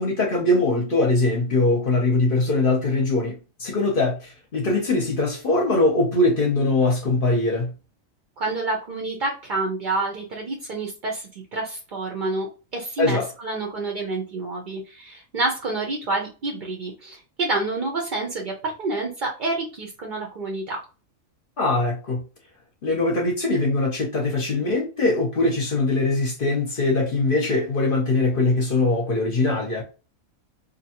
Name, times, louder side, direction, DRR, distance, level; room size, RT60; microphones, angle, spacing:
voice 1, 0.0-7.7 13.0-13.3 21.6-22.2 22.8-29.8, left 2 dB, 50° left, 0.7 m, -22 dB
voice 2, 8.4-12.5 12.7-20.8, right 2 dB, 55° right, 0.5 m, -28 dB
2.7 x 2.2 x 2.8 m
omnidirectional pair, 1.5 m